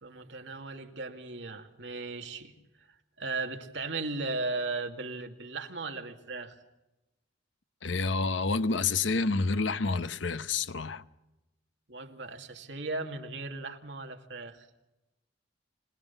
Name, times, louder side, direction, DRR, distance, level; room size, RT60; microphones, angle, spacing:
voice 1, 0.0-2.5 3.2-6.6 11.9-14.7, right 3 dB, 70° right, 2.3 m, -37 dB
voice 2, 7.8-11.0, left 4 dB, 75° left, 0.9 m, -28 dB
26.0 x 18.5 x 7.1 m
head